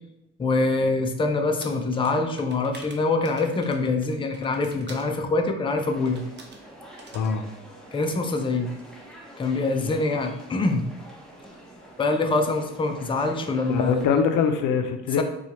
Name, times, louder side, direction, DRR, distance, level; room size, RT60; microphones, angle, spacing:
voice 1, 0.4-6.2 7.9-8.7 9.4-10.8 12.0-14.0 15.2-15.3, left 3 dB, 15° left, 4 dB, 0.4 m, -24 dB
sound 1, 1.6-5.1 6.1-6.6 7.0-7.3, right 3 dB, 35° right, 0.6 m, -47 dB
sound 2, 5.9-14.1, right 1 dB, ahead, 0.8 m, -46 dB
voice 2, 13.7-15.2, left 6 dB, 85° left, 7 dB, 0.5 m, -23 dB
4.3 x 2.3 x 2.9 m, 0.86 s
cardioid pair, 90°, 30 cm